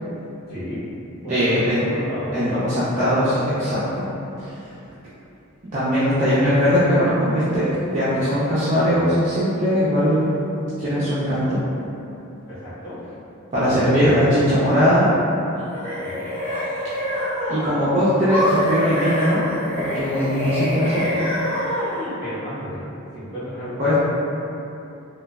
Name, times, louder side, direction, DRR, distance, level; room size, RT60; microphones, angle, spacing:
voice 1, 0.5-0.8 1.2-2.3 12.5-13.0 16.0-16.3 22.2-22.8 23.1-23.9, equal, 45° left, -15 dB, 1.2 m, -32 dB
voice 2, 1.3-1.8 2.3-4.1 4.4-4.5 5.7-7.6 7.9-10.3 10.8-11.6 13.5-15.1 17.5-19.4 19.8-21.0 23.8-23.9, equal, 35° right, -12 dB, 0.4 m, -20 dB
sound 1, 15.5-17.8 18.3-22.1, left 1 dB, 10° left, 0.7 m, -25 dB
3.1 x 2.2 x 2.2 m, 2.8 s
head